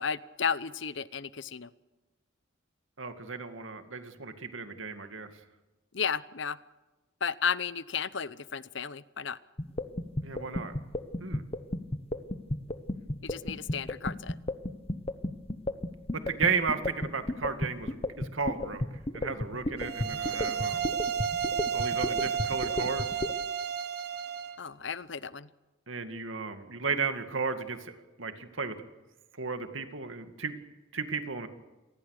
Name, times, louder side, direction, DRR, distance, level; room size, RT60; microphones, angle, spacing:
voice 1, 0.0-1.7 5.9-6.6 7.2-9.4 13.2-14.4 24.6-25.5, left 6 dB, 65° left, 17 dB, 0.8 m, -33 dB
voice 2, 3.0-5.3 10.2-10.7 11.2-11.4 16.1-18.8 19.1-20.9 21.7-23.1 25.9-27.9 28.2-28.8 29.4-30.6 30.9-31.5, right 5 dB, 85° right, 8 dB, 2.2 m, -34 dB
sound 1, 9.6-23.3, left 1 dB, 30° left, 1.2 m, -32 dB
sound 2, 19.8-24.6, right 7 dB, 55° right, 1.3 m, -32 dB
27.0 x 19.5 x 6.7 m, 1.1 s
head